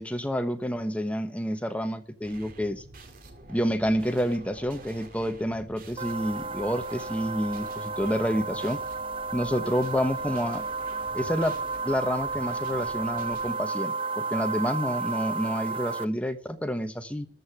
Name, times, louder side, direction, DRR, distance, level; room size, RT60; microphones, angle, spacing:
voice 1, 0.0-2.8 3.5-8.8 9.3-10.6 11.1-11.6 11.8-17.3, equal, 5° left, 1.0 m, -29 dB
sound 1, 2.2-13.5, right 2 dB, 50° right, 2.3 m, -48 dB
sound 2, 6.0-16.0, right 4 dB, 25° right, 0.5 m, -32 dB
13.5 x 5.5 x 9.5 m
head